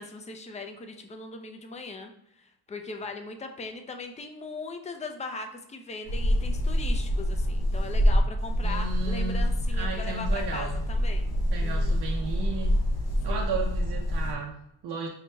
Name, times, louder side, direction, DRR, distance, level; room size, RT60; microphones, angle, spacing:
voice 1, 0.0-12.0 13.3-13.5, left 3 dB, 20° left, 5 dB, 0.4 m, -39 dB
sound 1, 6.0-14.3, equal, 65° left, 1.0 m, -26 dB
voice 2, 8.6-10.8 11.5-12.7 13.2-15.1, right 4 dB, 85° right, 0 dB, 0.6 m, -34 dB
5.5 x 2.2 x 3.1 m, 0.79 s
wide cardioid pair, 105°, 40 cm